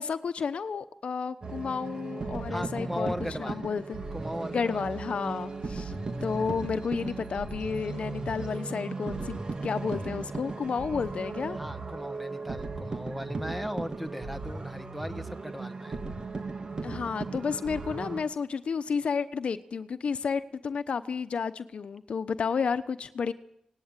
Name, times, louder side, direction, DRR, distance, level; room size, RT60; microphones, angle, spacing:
voice 1, 0.0-3.1 3.4-4.0 4.5-5.9 6.2-11.6 16.8-23.3, left 5 dB, 70° left, 12 dB, 1.0 m, -31 dB
sound 1, 1.4-18.2, right 3 dB, 45° right, 2.1 m, -36 dB
voice 2, 2.5-3.6 4.1-4.8 11.5-16.0, equal, 5° right, 8 dB, 1.6 m, -37 dB
18.5 x 18.0 x 9.1 m, 0.73 s
wide cardioid pair, 125°, 2 cm